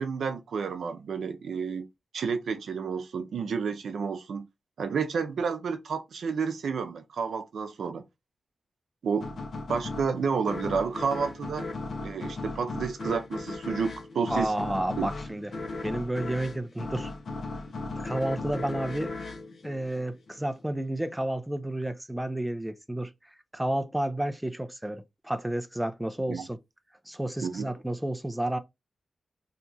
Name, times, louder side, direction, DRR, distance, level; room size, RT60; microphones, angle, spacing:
voice 1, 0.0-1.9 2.1-4.5 4.8-8.1 9.0-9.4 9.7-11.7 12.0-14.5 15.0-15.1 26.3-26.5 27.4-27.7, right 5 dB, 85° right, 0.5 m, -30 dB
sound 1, 9.2-20.5, left 3 dB, 60° left, 0.6 m, -37 dB
voice 2, 14.3-15.6 15.8-17.1 18.0-19.1 19.6-23.1 23.5-26.6 27.1-28.6, right 1 dB, 5° right, 0.4 m, -31 dB
2.8 x 2.3 x 3.9 m
wide cardioid pair, 145°, 0 cm